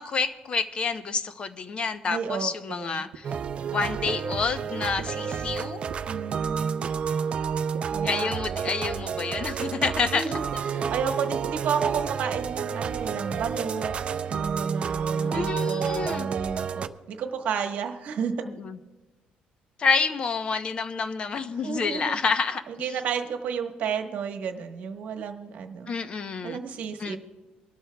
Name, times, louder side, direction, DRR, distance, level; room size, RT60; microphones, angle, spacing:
voice 1, 0.0-3.3 3.7-5.8 8.0-10.6 15.2-16.3 18.6-18.8 19.8-22.9 25.9-26.6 27.0-27.2, left 5 dB, 35° left, 10 dB, 0.7 m, -28 dB
voice 2, 2.0-3.0 6.1-6.9 7.9-8.3 10.1-13.9 14.3-18.3 21.6-22.2 22.7-25.9 26.4-27.2, right 6 dB, 60° right, 4 dB, 1.2 m, -32 dB
sound 1, 3.1-3.2 4.0-4.1 5.0-5.1 5.9-6.0 6.8-6.9 7.7-7.8 8.7-8.8 9.6-9.7 10.5-10.6 11.4-11.5, right 10 dB, 75° right, 0.7 m, -39 dB
sound 2, 3.2-16.9, right 6 dB, 40° right, 0.5 m, -30 dB
24.5 x 12.5 x 2.3 m, 1.2 s
cardioid pair, 145°, 3 cm